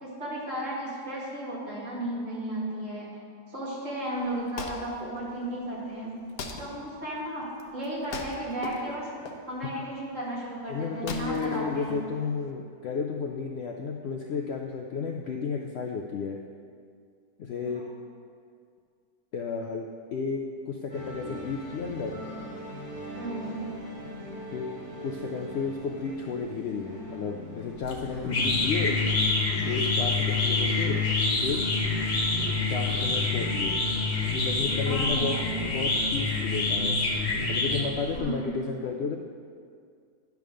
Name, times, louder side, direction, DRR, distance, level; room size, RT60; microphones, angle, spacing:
voice 1, 0.0-3.1 3.5-6.3 6.6-7.5 7.7-9.1 9.5-12.1 17.7-17.8 23.2-23.6 28.2-28.5 34.8-35.5 38.1-38.5, right 1 dB, 50° right, -6 dB, 2.3 m, -34 dB
Wood, 4.1-12.5, left 4 dB, 70° left, 1.1 m, -42 dB
voice 2, 10.7-16.4 17.4-17.8 19.3-22.2 24.5-24.7 25.0-28.9 29.7-31.0 31.4-31.7 32.7-33.7 34.3-35.4 35.6-37.0 37.5-39.2, left 5 dB, 90° left, 2 dB, 0.5 m, -32 dB
sound 1, 20.9-34.0, equal, 80° right, 3.0 m, -43 dB
sound 2, 27.8-38.2, left 3 dB, 45° left, 1.3 m, -27 dB
10.5 x 3.6 x 6.3 m, 2.2 s
omnidirectional pair, 1.7 m